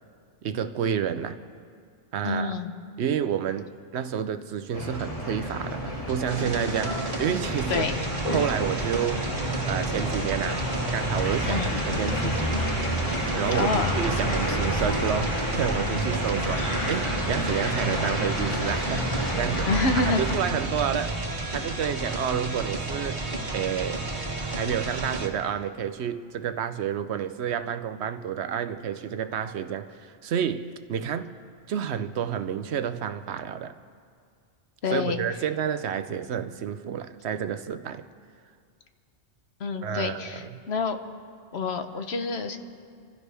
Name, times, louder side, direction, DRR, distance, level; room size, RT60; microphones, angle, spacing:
voice 1, 0.4-1.4 2.1-2.6 3.0-7.9 8.3-9.3 9.7-12.7 13.3-19.7 19.9-21.2 21.5-24.0 24.4-31.3 31.7-33.7 34.9-38.1 39.8-40.5, right 8 dB, 75° right, 0.9 m, -30 dB
voice 2, 2.2-2.7 7.7-8.0 11.4-11.7 13.5-13.9 19.7-20.2 34.8-35.2 39.6-41.0 41.5-42.6, left 4 dB, 65° left, 1.2 m, -27 dB
sound 1, 4.7-20.4, equal, 30° left, 2.6 m, -29 dB
sound 2, 6.3-25.3, right 2 dB, 45° right, 1.5 m, -32 dB
26.5 x 15.5 x 3.4 m
omnidirectional pair, 1.1 m